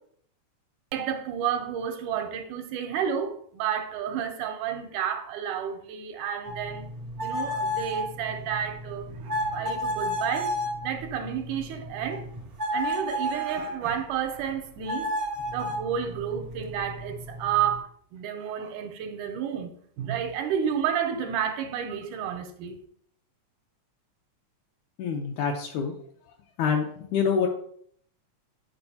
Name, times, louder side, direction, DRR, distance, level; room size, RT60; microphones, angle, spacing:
voice 1, 0.9-6.9 7.2-10.5 10.8-12.2 12.7-15.1 15.5-19.7 20.0-22.8, right 8 dB, 80° right, 2.1 m, -31 dB
sound 1, 6.4-13.8 14.9-17.8, equal, 65° right, 0.8 m, -32 dB
voice 2, 25.0-25.9 26.6-27.5, left 6 dB, 75° left, 2.0 m, -26 dB
8.8 x 5.2 x 2.7 m
omnidirectional pair, 3.6 m